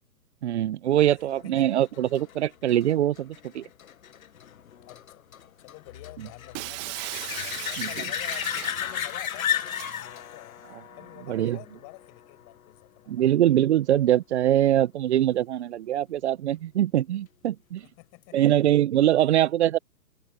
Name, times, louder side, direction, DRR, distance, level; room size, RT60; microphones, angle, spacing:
voice 1, 0.4-3.7 6.2-6.3 7.8-7.9 11.3-11.6 13.1-17.9 18.3-19.8, right 12 dB, 45° right, 1.2 m, -23 dB
sound 1, 1.3-12.6 18.2-18.3, left 9 dB, 60° left, 1.7 m, -35 dB
voice 2, 4.8-5.3 5.6-7.1 7.4-10.6 11.0-13.3 17.8-18.5 19.2-19.5, left 40 dB or more, 30° left, 5.7 m, -48 dB
Shatter, 6.5-10.0, right 24 dB, 20° right, 1.8 m, -38 dB
figure-of-eight pair, 135°, 48 cm